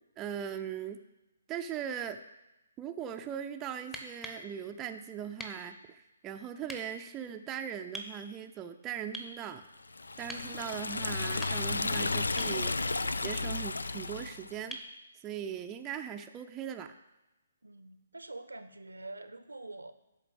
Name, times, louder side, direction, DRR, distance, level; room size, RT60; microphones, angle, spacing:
voice 1, 0.2-1.0 1.5-2.2 2.8-9.6 10.2-12.8 13.2-14.8 15.2-17.0, right 9 dB, 15° right, 5 dB, 0.5 m, -39 dB
sound 1, 3.8-4.5 5.4-5.6 6.7-6.8 7.9-8.1 9.1-9.4 10.3-10.5 11.2-11.8 12.4-12.6 14.7-14.9 16.8-16.9, equal, 5° left, 1.0 m, -43 dB
Liquid, 9.9-14.5, left 3 dB, 70° left, 0.4 m, -33 dB
voice 2, 17.6-19.9, right 2 dB, 75° right, 11 dB, 0.8 m, -45 dB
12.0 x 4.1 x 7.4 m, 1.0 s
figure-of-eight pair, 130°, 0 cm